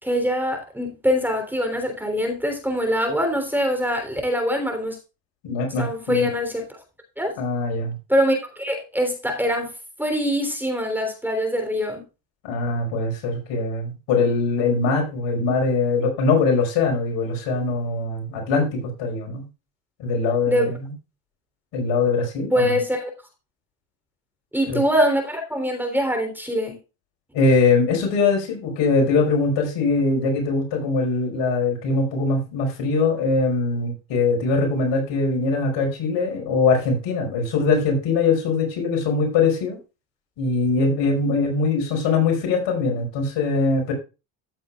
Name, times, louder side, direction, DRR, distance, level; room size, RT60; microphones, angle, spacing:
voice 1, 0.0-5.0 5.8-6.8 7.2-7.3 8.1-9.7 10.0-12.0 20.5-20.7 22.5-23.1 24.5-26.8, equal, 5° right, 5 dB, 3.4 m, -23 dB
voice 2, 5.4-6.3 7.4-8.0 12.4-19.5 20.0-20.9 21.7-22.8 24.7-24.8 27.3-39.8 40.4-43.9, left 3 dB, 75° left, 2 dB, 5.3 m, -22 dB
14.5 x 7.5 x 2.4 m, 0.29 s
supercardioid pair, 90°, 43 cm